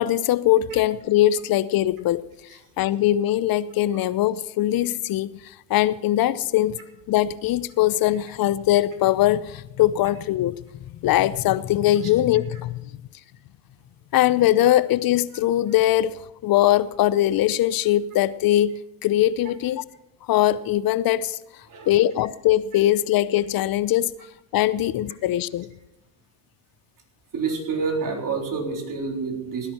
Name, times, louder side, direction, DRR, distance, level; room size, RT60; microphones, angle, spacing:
voice 1, 0.0-2.2 2.8-6.8 7.1-10.6 11.0-12.8 14.1-19.9 20.3-21.4 21.9-24.1 24.5-25.7, left 13 dB, 50° left, 17 dB, 0.7 m, -21 dB
voice 2, 27.3-29.7, right 4 dB, 45° right, 1 dB, 3.8 m, -28 dB
17.5 x 10.5 x 4.4 m, 0.89 s
supercardioid pair, 90°, 44 cm